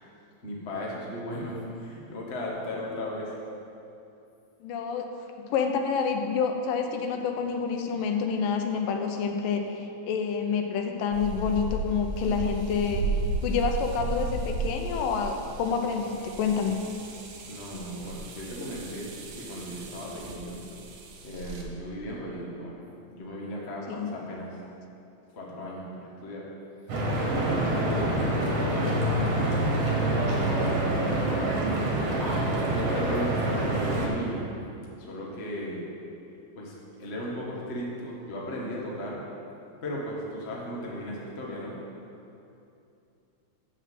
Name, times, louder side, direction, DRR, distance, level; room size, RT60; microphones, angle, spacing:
voice 1, 0.4-3.3 17.5-20.6 21.2-22.8 23.1-24.6 25.3-26.5 27.3-32.0 32.7-34.6 35.0-35.9 36.5-39.2 39.8-41.7, equal, 60° left, -4 dB, 0.6 m, -36 dB
voice 2, 4.6-5.1 5.5-16.8 23.9-24.1, left 6 dB, 80° left, 4 dB, 2.3 m, -28 dB
sound 1, 11.1-21.6, right 3 dB, 85° right, 2.7 m, -34 dB
Stream / Boat Water vehicle, 26.9-34.1, right 1 dB, 55° right, 2.2 m, -26 dB
7.4 x 6.7 x 7.5 m, 2.7 s
omnidirectional pair, 4.0 m